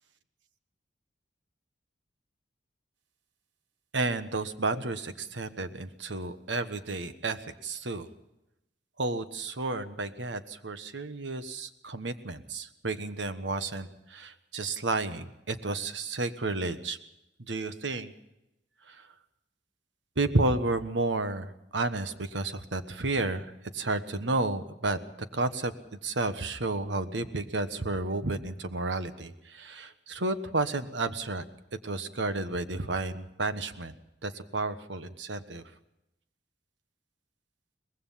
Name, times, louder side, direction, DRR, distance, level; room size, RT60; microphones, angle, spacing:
voice 1, 3.9-8.1 9.0-17.0 17.4-18.1 18.9-19.1 20.2-25.0 25.3-25.7 26.0-31.4 31.8-33.9 34.2-35.6, right 2 dB, 85° right, 10 dB, 1.3 m, -31 dB
23.5 x 19.5 x 5.7 m, 0.90 s
head